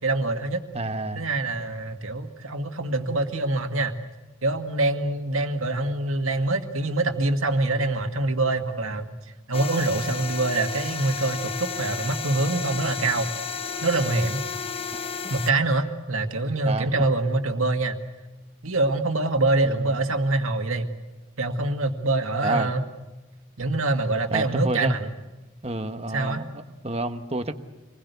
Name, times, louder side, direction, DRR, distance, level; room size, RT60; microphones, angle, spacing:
voice 1, 0.0-0.6 1.2-4.0 4.4-9.1 9.5-13.3 13.8-14.4 15.3-18.0 18.6-20.9 21.4-22.8 23.6-25.1 26.1-26.4, right 2 dB, 75° right, 6 dB, 2.0 m, -25 dB
voice 2, 0.7-1.2 14.9-15.1 16.6-16.9 19.6-19.9 22.4-22.7 24.3-25.0 25.6-27.5, right 2 dB, 30° right, 8 dB, 1.2 m, -29 dB
sound 1, 9.5-15.5, left 5 dB, 25° left, 0.9 m, -32 dB
26.5 x 21.0 x 8.3 m, 1.1 s
head